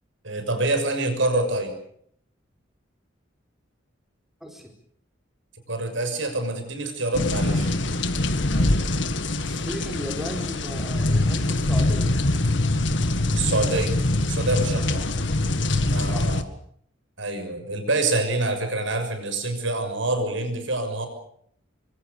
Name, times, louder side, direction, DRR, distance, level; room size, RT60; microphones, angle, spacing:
voice 1, 0.2-1.8 5.7-7.7 13.3-14.0 14.3-15.1 15.9-16.5 17.2-21.1, right 2 dB, 75° right, 7 dB, 6.5 m, -26 dB
voice 2, 4.4-4.7 8.5-8.9 9.4-12.2 14.9-15.0 16.1-16.3, equal, ahead, 2 dB, 4.7 m, -36 dB
sound 1, 7.1-16.4, left 2 dB, 65° left, 2.0 m, -23 dB
26.0 x 25.0 x 6.8 m, 0.65 s
head